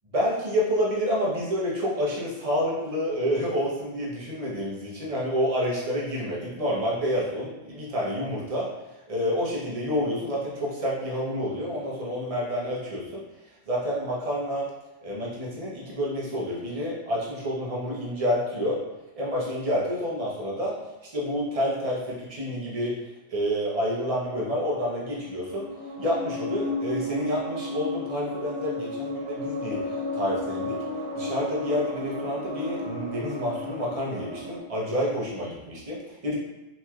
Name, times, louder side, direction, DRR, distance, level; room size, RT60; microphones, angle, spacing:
voice 1, 0.1-8.7 9.1-13.2 13.7-14.7 15.0-18.8 19.2-20.8 21.1-23.0 23.3-25.6 26.0-30.8 31.2-36.4, equal, 35° right, -5 dB, 0.7 m, -28 dB
sound 1, 25.1-34.6, left 1 dB, 75° right, 1.4 m, -33 dB
3.1 x 2.8 x 2.3 m, 1.0 s
omnidirectional pair, 1.2 m